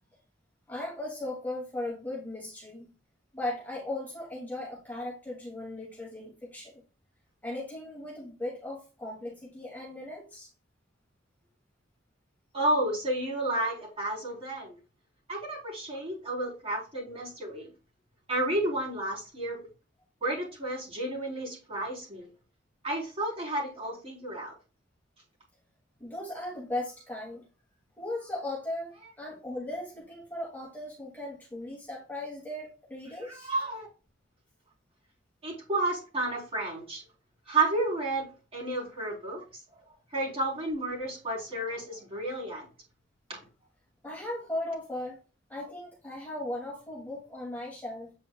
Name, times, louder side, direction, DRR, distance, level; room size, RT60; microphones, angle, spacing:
voice 1, 0.7-2.9 3.3-6.8 7.4-10.5 26.0-27.4 28.0-28.9 29.2-33.5 44.0-45.2 45.5-48.1, left 1 dB, 10° left, -4 dB, 2.4 m, -37 dB
voice 2, 12.5-14.8 15.3-17.7 18.3-19.6 20.2-22.3 22.8-24.5 33.2-33.9 35.4-37.0 37.5-39.4 40.1-42.7 43.3-43.4, right 2 dB, 30° right, -3 dB, 3.9 m, -31 dB
8.5 x 5.1 x 2.3 m, 0.32 s
head